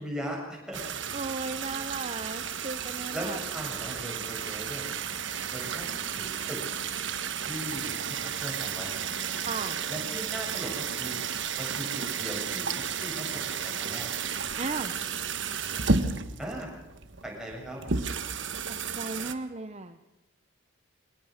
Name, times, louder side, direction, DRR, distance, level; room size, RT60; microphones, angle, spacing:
voice 1, 0.0-1.0 3.1-4.9 5.5-6.6 7.4-9.2 9.9-11.2 11.6-12.7 13.0-14.1 16.4-16.7 17.2-17.8, equal, 5° right, -2 dB, 7.4 m, -38 dB
sound 1, 0.7-19.3, right 6 dB, 60° right, 1.4 m, -33 dB
voice 2, 1.1-3.4 9.5-9.8 14.6-14.9 18.7-20.1, right 3 dB, 30° right, 8 dB, 0.9 m, -36 dB
24.0 x 19.0 x 6.6 m, 0.97 s
head